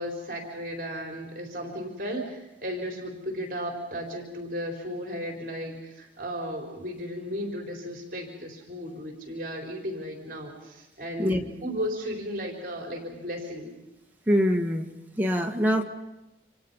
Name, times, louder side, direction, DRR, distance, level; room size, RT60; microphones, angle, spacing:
voice 1, 0.0-13.7, equal, 50° right, 2 dB, 4.2 m, -35 dB
voice 2, 14.3-15.8, equal, 10° right, 1 dB, 1.9 m, -24 dB
29.0 x 27.0 x 5.6 m, 0.95 s
head